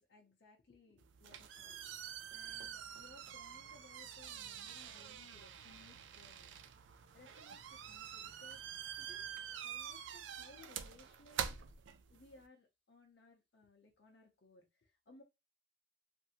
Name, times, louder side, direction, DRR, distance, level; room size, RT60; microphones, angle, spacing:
voice 1, 0.0-2.0 2.3-6.5 7.1-11.6 12.1-15.2, left 3 dB, 65° left, 0 dB, 0.6 m, -63 dB
sound 1, 1.0-12.4, right 8 dB, 80° right, 0.4 m, -47 dB
2.9 x 2.6 x 2.4 m, 0.24 s
head